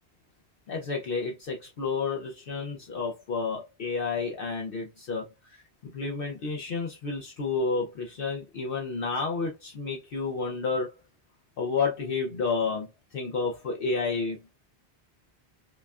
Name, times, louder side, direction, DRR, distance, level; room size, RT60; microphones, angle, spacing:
voice 1, 0.7-5.6 5.8-10.9 11.6-12.9 13.1-14.4, left 4 dB, 60° left, 0.7 m, -30 dB
5.2 x 2.3 x 2.3 m
omnidirectional pair, 1.1 m